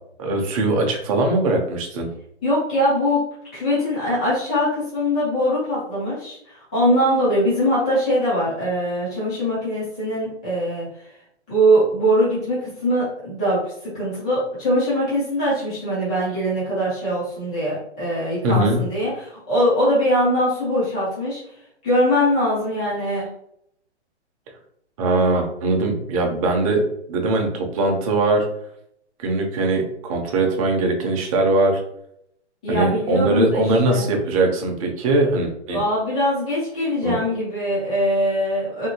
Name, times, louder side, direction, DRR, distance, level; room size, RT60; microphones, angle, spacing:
voice 1, 0.2-2.1 18.4-18.8 25.0-26.8 27.1-28.4 29.2-31.8 32.7-35.8 37.0-37.2, right 2 dB, 30° right, 2 dB, 0.7 m, -21 dB
voice 2, 2.4-3.2 3.5-10.9 11.5-21.4 21.8-23.3 32.6-34.0 35.7-38.9, equal, 5° left, -9 dB, 0.3 m, -22 dB
2.7 x 2.7 x 2.7 m, 0.75 s
hypercardioid pair, 135°, 35 cm